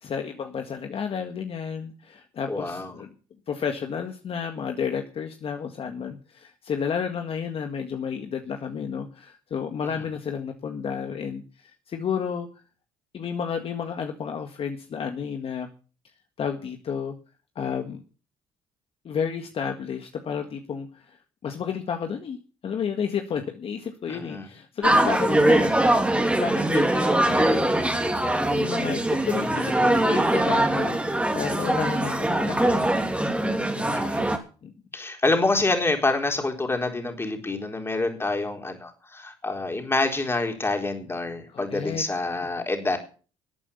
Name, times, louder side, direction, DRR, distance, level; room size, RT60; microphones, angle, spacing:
voice 1, 0.0-3.1 3.5-12.5 13.1-15.7 16.4-17.2 17.6-18.0 19.1-22.4 22.6-25.7 26.4-32.8 33.6-34.1 34.6-34.7 41.5-42.0, left 7 dB, 50° left, 5 dB, 1.8 m, -31 dB
voice 2, 2.5-2.9 24.1-24.5 29.2-30.1 33.9-34.2 34.9-43.0, left 2 dB, 20° left, 4 dB, 4.0 m, -27 dB
sound 1, 24.8-34.4, right 1 dB, 10° right, 2.9 m, -22 dB
13.5 x 8.6 x 7.1 m, 0.37 s
supercardioid pair, 80°, 13 cm